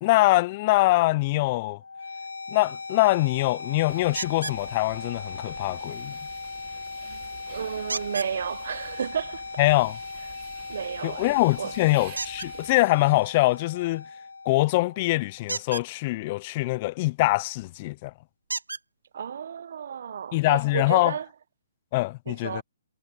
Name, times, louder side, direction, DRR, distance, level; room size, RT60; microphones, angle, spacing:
voice 1, 0.0-1.8 2.5-6.1 9.6-10.0 11.0-14.0 14.5-18.1 20.3-21.1 21.9-22.6, left 20 dB, 40° left, 0.6 m, -23 dB
sound 1, 1.8-15.8, left 4 dB, 85° left, 2.8 m, -39 dB
sound 2, 3.9-12.9, right 26 dB, 35° right, 2.3 m, -50 dB
sound 3, 4.2-4.6 7.9-8.3 12.1-12.5 15.4-15.9 17.5-17.6 18.5-18.8 19.8-19.9 20.4-20.5, right 3 dB, 85° right, 1.0 m, -32 dB
voice 2, 7.5-9.4 10.7-11.3 11.6-11.7 12.5-12.6 19.1-21.3 22.3-22.6, right 8 dB, 60° right, 1.1 m, -32 dB
figure-of-eight pair, 130°, 0 cm